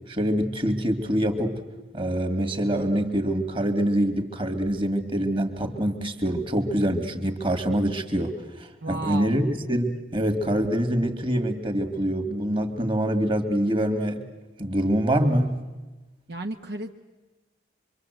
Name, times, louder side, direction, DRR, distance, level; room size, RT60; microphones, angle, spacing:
voice 1, 0.1-1.6 1.9-14.2 14.6-15.5, equal, 30° right, 6 dB, 2.2 m, -25 dB
voice 2, 8.8-9.4 16.3-16.9, right 2 dB, 60° right, 3 dB, 1.1 m, -33 dB
25.5 x 24.5 x 8.0 m, 1.2 s
head